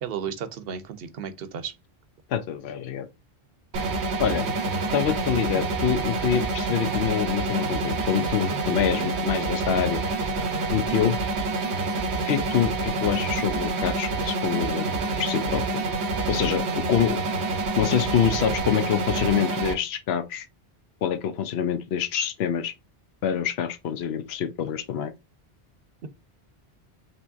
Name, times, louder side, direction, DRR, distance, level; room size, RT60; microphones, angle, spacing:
voice 1, 0.0-1.7 10.9-11.1 26.0-26.1, right 7 dB, 65° right, 0.9 m, -34 dB
voice 2, 2.3-3.1 4.2-4.5 4.9-10.0 10.7-11.2 12.3-14.9 15.2-15.8 16.3-17.2 17.8-20.5 21.0-22.7 23.2-25.1, left 8 dB, 75° left, 0.9 m, -26 dB
sound 1, 3.7-19.7, right 3 dB, 90° right, 1.1 m, -27 dB
5.3 x 3.0 x 2.6 m
omnidirectional pair, 1.1 m